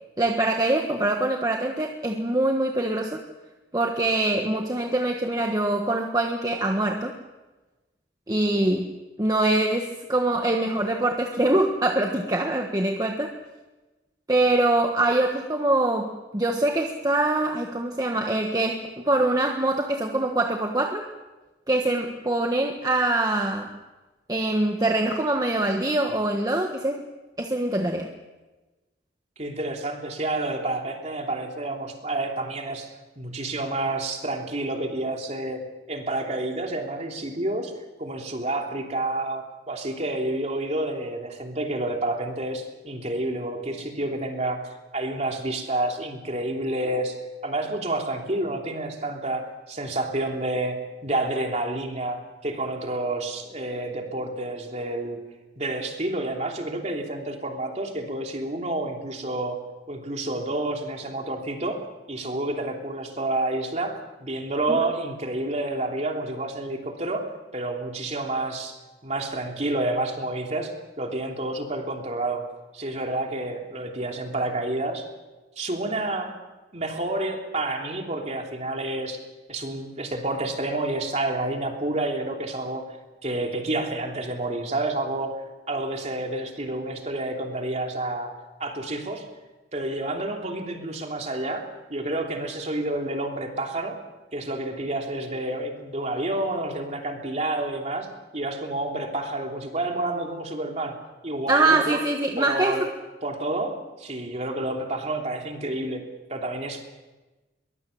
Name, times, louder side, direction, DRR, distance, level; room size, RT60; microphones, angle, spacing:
voice 1, 0.2-3.2 3.7-7.2 8.3-8.9 9.2-13.3 14.3-21.0 21.7-23.7 24.3-27.0 27.4-28.1 64.7-64.8 101.5-102.9, right 2 dB, 20° right, 3 dB, 1.3 m, -24 dB
voice 2, 29.4-35.6 35.9-37.7 38.0-47.2 47.4-55.2 55.6-59.6 59.9-72.4 72.7-75.1 75.6-76.4 76.7-79.2 79.5-82.9 83.2-88.3 88.6-89.3 89.7-94.0 94.3-101.0 101.2-102.0 102.4-102.9 103.2-106.8, right 2 dB, 40° right, 2 dB, 3.1 m, -29 dB
23.0 x 20.5 x 7.1 m, 1.2 s
head